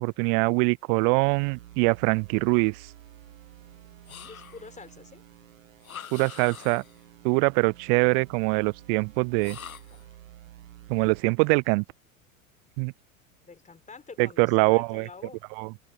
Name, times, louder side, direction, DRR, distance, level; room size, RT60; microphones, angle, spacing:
voice 1, 0.0-2.9 6.1-6.8 7.2-9.6 10.9-11.8 12.8-12.9 14.2-15.1 15.6-15.7, right 40 dB or more, 45° right, 0.4 m, -23 dB
sound 1, 1.2-11.2, right 13 dB, 70° right, 2.3 m, -50 dB
sound 2, 4.1-4.8 5.8-7.0 9.4-10.1, left 8 dB, 85° left, 1.4 m, -44 dB
voice 2, 4.2-5.2 13.4-15.4, left 4 dB, 20° left, 4.8 m, -46 dB
open air
figure-of-eight pair, 80°, 41 cm